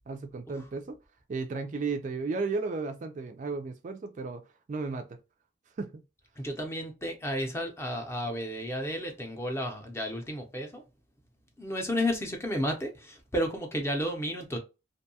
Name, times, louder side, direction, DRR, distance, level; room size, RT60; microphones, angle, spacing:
voice 1, 0.1-1.0 1.3-5.2 5.8-6.0, right 4 dB, 40° right, 0.3 m, -34 dB
voice 2, 6.4-10.8 11.6-14.6, equal, 15° left, 0.6 m, -32 dB
2.6 x 2.2 x 2.7 m
head